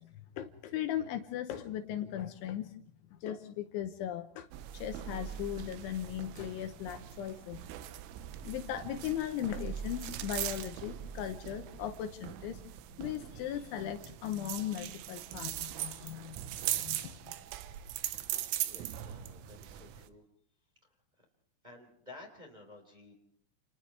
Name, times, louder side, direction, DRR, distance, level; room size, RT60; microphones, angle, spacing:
voice 1, 0.0-2.8 3.1-4.5 4.7-7.6 8.4-12.6 13.0-16.4 16.7-17.3, left 11 dB, 75° left, 7 dB, 3.2 m, -38 dB
sound 1, 4.5-20.1, right 12 dB, 85° right, 3.8 m, -40 dB
voice 2, 18.1-20.2 20.8-21.3 21.6-23.1, left 2 dB, 10° right, 2 dB, 3.5 m, -54 dB
29.5 x 29.0 x 3.3 m, 0.63 s
omnidirectional pair, 5.8 m